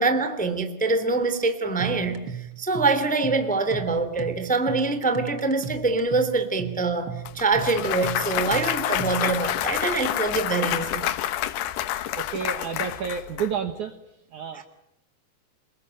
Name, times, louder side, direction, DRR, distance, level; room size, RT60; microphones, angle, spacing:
voice 1, 0.0-11.1 14.5-14.6, right 3 dB, 5° left, 9 dB, 1.6 m, -25 dB
sound 1, 1.8-9.4, right 8 dB, 85° right, 1.1 m, -36 dB
Clapping / Cheering / Applause, 7.3-13.5, left 13 dB, 75° left, 3.0 m, -28 dB
voice 2, 12.2-14.0 14.3-14.6, right 7 dB, 60° right, 8 dB, 2.1 m, -30 dB
28.5 x 21.0 x 9.1 m, 0.84 s
omnidirectional pair, 5.0 m